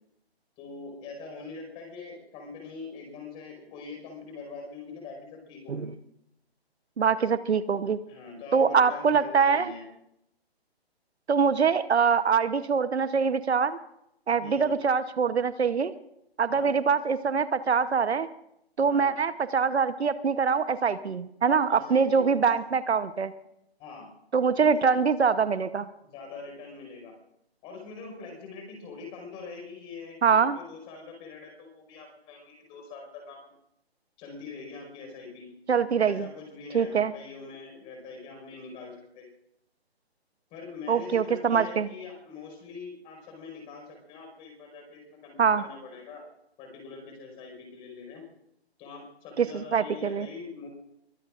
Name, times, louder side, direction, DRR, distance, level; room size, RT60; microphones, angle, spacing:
voice 1, 0.6-6.0 8.1-9.8 14.4-14.8 16.5-16.8 18.9-19.1 21.7-22.5 23.8-24.1 24.5-25.0 26.0-27.1 27.6-33.5 34.2-35.5 36.0-39.3 40.5-46.2 46.6-48.2 48.8-50.7, left 4 dB, 15° left, 2 dB, 5.1 m, -43 dB
voice 2, 7.0-8.0 8.5-9.7 11.3-13.8 14.3-15.9 16.4-18.3 18.8-23.3 24.3-25.9 30.2-30.6 35.7-36.3 36.7-37.1 40.9-41.9 45.4-45.6 49.4-50.3, right 6 dB, 80° right, 13 dB, 1.0 m, -24 dB
23.0 x 19.0 x 2.5 m, 0.78 s
hypercardioid pair, 160°, 32 cm